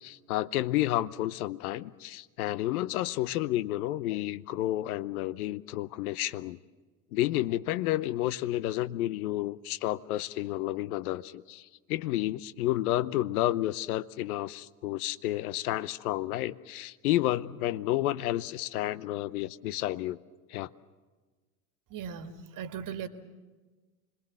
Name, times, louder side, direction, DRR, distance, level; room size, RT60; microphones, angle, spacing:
voice 1, 0.0-6.6 7.1-20.2 20.5-20.7, left 15 dB, 70° left, 18 dB, 0.8 m, -31 dB
voice 2, 21.9-23.1, right 7 dB, 45° right, 9 dB, 1.9 m, -38 dB
26.0 x 21.0 x 7.6 m, 1.3 s
hypercardioid pair, 70°, 46 cm